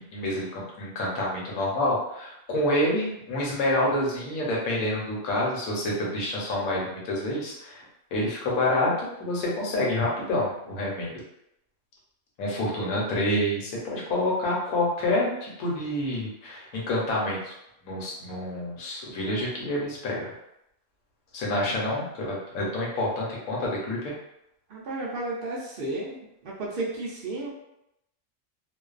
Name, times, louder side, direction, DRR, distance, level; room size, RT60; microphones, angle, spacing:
voice 1, 0.0-7.8 8.1-11.1 12.4-17.5 17.8-20.3 21.3-24.1, left 1 dB, 80° left, -4 dB, 1.2 m, -28 dB
voice 2, 24.7-26.2 26.4-27.5, right 2 dB, 60° right, -4 dB, 0.5 m, -33 dB
2.5 x 2.2 x 2.3 m, 0.82 s
omnidirectional pair, 1.5 m